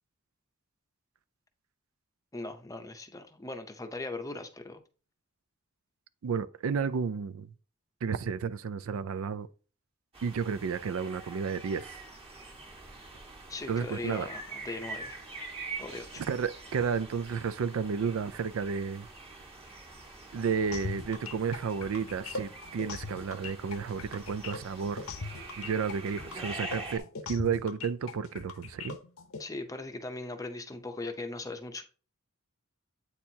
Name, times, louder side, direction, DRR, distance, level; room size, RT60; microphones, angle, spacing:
voice 1, 2.3-4.8 13.5-15.2 15.8-16.2 29.4-31.8, left 2 dB, 15° left, 0.6 m, -39 dB
voice 2, 6.2-7.5 8.0-9.5 10.2-12.0 13.7-14.3 16.2-19.1 20.3-25.0 25.6-27.0 27.3-29.0, right 6 dB, 75° right, 0.4 m, -32 dB
sound 1, 10.1-27.0, right 3 dB, 30° right, 1.4 m, -45 dB
sound 2, 20.7-29.4, left 4 dB, 80° left, 0.8 m, -40 dB
8.4 x 4.4 x 2.7 m
head